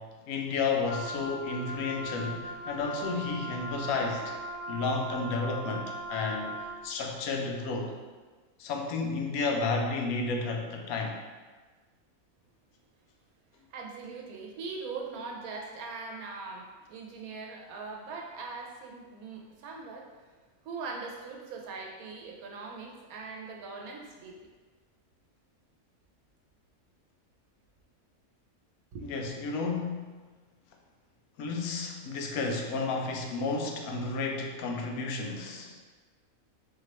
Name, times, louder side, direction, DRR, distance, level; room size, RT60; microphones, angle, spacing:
voice 1, 0.0-4.4 4.7-8.0 8.6-11.2 29.0-30.1 31.4-35.8, left 3 dB, 85° left, 2 dB, 1.1 m, -32 dB
Wind instrument woodwind instrument, 0.8-6.8, right 1 dB, 40° right, 1.0 m, -39 dB
voice 2, 13.7-20.1 20.6-24.5 28.9-29.1, right 4 dB, 85° right, 1 dB, 1.1 m, -41 dB
4.3 x 3.0 x 2.9 m, 1.4 s
omnidirectional pair, 1.5 m